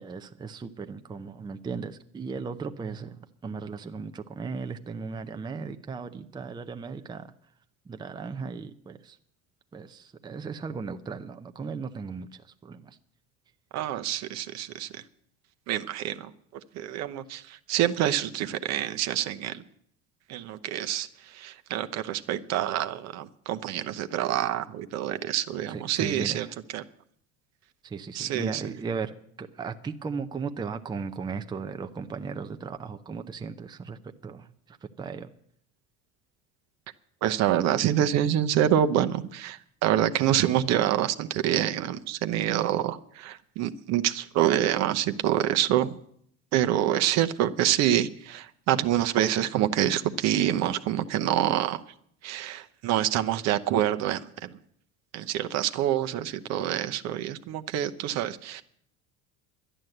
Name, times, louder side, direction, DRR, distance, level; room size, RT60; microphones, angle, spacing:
voice 1, 0.0-7.3 7.9-9.2 9.7-13.0 25.7-26.6 27.8-35.3, right 5 dB, 15° right, 7 dB, 0.6 m, -36 dB
voice 2, 13.7-14.9 15.7-16.3 16.7-19.6 20.3-26.5 26.7-26.8 28.1-28.6 37.2-46.0 46.5-51.8 52.2-54.6 55.1-58.6, right 11 dB, 55° right, 10 dB, 0.8 m, -26 dB
11.5 x 10.5 x 7.8 m, 0.67 s
cardioid pair, 125°, 31 cm